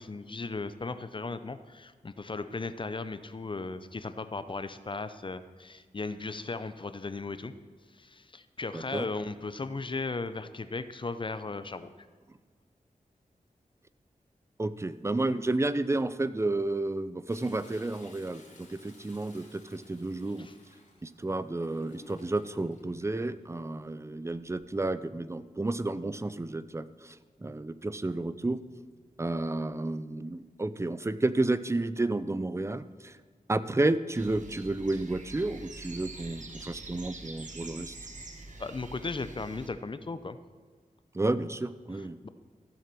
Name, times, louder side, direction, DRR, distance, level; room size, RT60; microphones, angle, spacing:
voice 1, 0.0-7.5 7.9-11.9 20.4-20.5 38.6-40.4 42.2-42.3, left 3 dB, 35° left, 12 dB, 0.6 m, -36 dB
voice 2, 8.7-9.1 14.6-20.5 21.0-28.6 29.2-33.2 33.5-37.9 41.1-42.2, right 2 dB, 20° right, 14 dB, 0.5 m, -31 dB
Toilet flush, 17.3-22.8 24.3-24.8 25.3-25.4, left 2 dB, 60° left, 2.8 m, -56 dB
sound 1, 34.1-39.7, right 2 dB, 60° right, 1.4 m, -45 dB
14.5 x 7.4 x 6.1 m, 1.5 s
wide cardioid pair, 85°, 14 cm